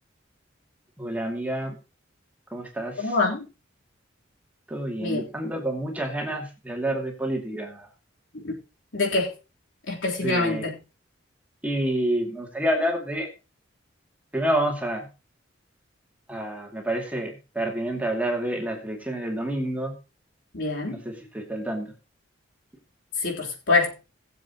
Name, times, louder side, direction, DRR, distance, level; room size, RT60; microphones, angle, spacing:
voice 1, 1.0-1.7 2.5-3.1 4.7-7.9 10.2-10.7 11.6-13.3 14.3-15.1 16.3-20.0 20.9-21.9, right 1 dB, 10° right, 2.4 m, -28 dB
voice 2, 3.0-3.5 5.0-5.3 8.3-8.6 8.9-9.3 9.9-10.8 20.5-21.0 23.2-23.9, left 3 dB, 70° left, 3.5 m, -25 dB
20.5 x 7.7 x 2.9 m
head